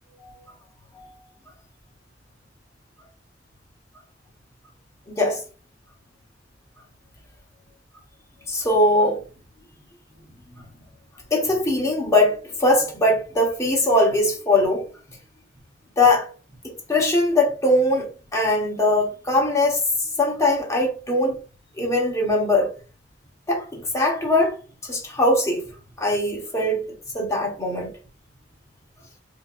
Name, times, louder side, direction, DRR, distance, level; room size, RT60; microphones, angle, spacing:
voice 1, 5.1-5.4 8.5-9.2 10.5-10.6 11.3-14.8 16.0-16.3 16.6-21.4 21.8-22.7 23.5-24.6 24.8-25.7 26.0-26.9 27.1-27.9, left 1 dB, 15° left, 1.2 m, -21 dB
4.3 x 2.8 x 2.5 m
head